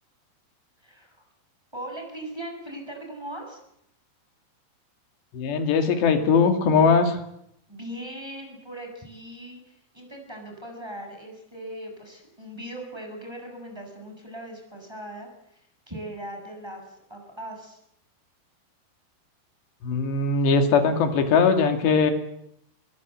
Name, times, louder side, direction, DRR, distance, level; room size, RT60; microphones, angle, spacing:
voice 1, 0.8-1.2 1.7-3.6 7.7-15.3 15.9-17.8, right 1 dB, 5° right, 2 dB, 7.5 m, -39 dB
voice 2, 5.3-7.2 19.8-22.1, left 5 dB, 85° left, 6 dB, 4.6 m, -20 dB
26.5 x 22.5 x 8.2 m, 0.76 s
omnidirectional pair, 4.8 m